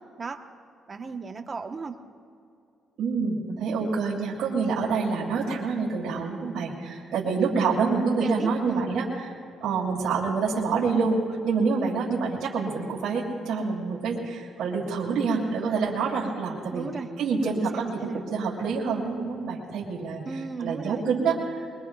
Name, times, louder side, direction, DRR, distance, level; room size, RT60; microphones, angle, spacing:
voice 1, 0.9-2.0 8.2-8.9 16.7-17.1 17.5-18.2 20.2-21.1, right 4 dB, 35° right, 5 dB, 1.1 m, -35 dB
voice 2, 3.0-9.3 9.6-16.9 17.2-20.2 20.6-21.6, right 4 dB, 80° right, -4 dB, 3.0 m, -27 dB
23.0 x 22.5 x 2.4 m, 2.4 s
cardioid pair, 90°, 0 cm